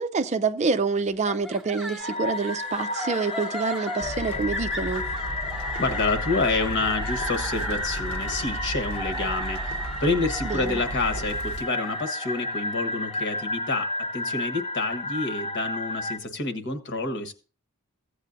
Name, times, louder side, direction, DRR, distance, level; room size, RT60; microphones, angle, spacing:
voice 1, 0.0-5.0 10.4-10.8, right 4 dB, 30° right, 0.5 m, -27 dB
sound 1, 1.2-14.4, equal, 5° right, 0.9 m, -37 dB
sound 2, 2.0-16.2, left 2 dB, 25° left, 0.8 m, -32 dB
sound 3, 4.0-11.6, right 1 dB, 75° left, 1.5 m, -35 dB
voice 2, 5.8-17.3, left 3 dB, 55° left, 1.3 m, -28 dB
15.5 x 8.3 x 2.6 m
head